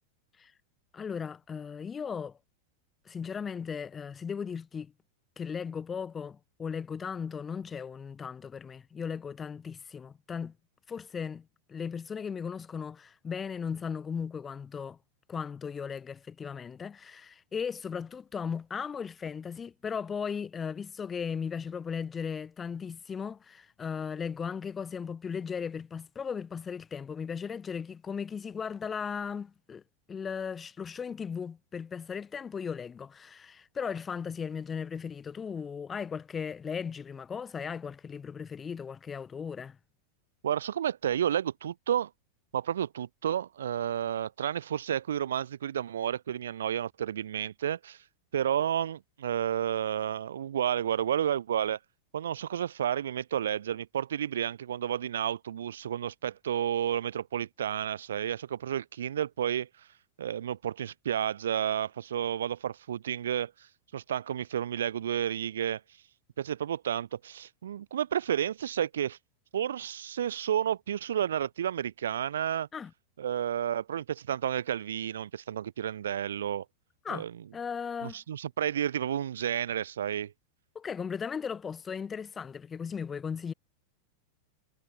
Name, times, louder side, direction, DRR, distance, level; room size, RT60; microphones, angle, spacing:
voice 1, 0.9-2.4 3.1-4.9 5.4-10.5 10.9-15.0 15.3-29.8 30.1-39.8 72.7-72.9 77.0-77.3 77.5-78.2 80.7-83.5, left 6 dB, 20° left, 0.7 m, -37 dB
voice 2, 40.4-42.1 42.5-48.0 48.3-51.8 52.1-59.7 60.2-63.5 63.9-65.8 66.4-69.2 69.5-72.7 73.2-76.6 77.1-77.4 78.0-80.3, right 10 dB, 65° right, 0.6 m, -31 dB
figure-of-eight pair, 90°, 0 cm